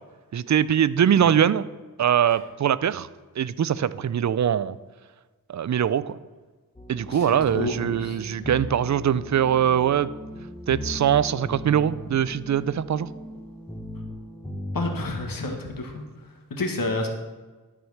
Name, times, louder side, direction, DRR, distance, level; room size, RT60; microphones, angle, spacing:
voice 1, 0.3-1.7 2.0-3.1 3.4-4.8 5.5-6.2 6.9-10.1 10.7-13.1, right 9 dB, 55° right, 17 dB, 0.5 m, -22 dB
sound 1, 6.8-15.0, left 1 dB, 15° left, 1.3 m, -37 dB
voice 2, 7.1-8.2 14.7-16.0 16.5-17.1, left 2 dB, 70° left, 3 dB, 1.7 m, -29 dB
12.5 x 4.9 x 6.5 m, 1.3 s
cardioid pair, 60°, 35 cm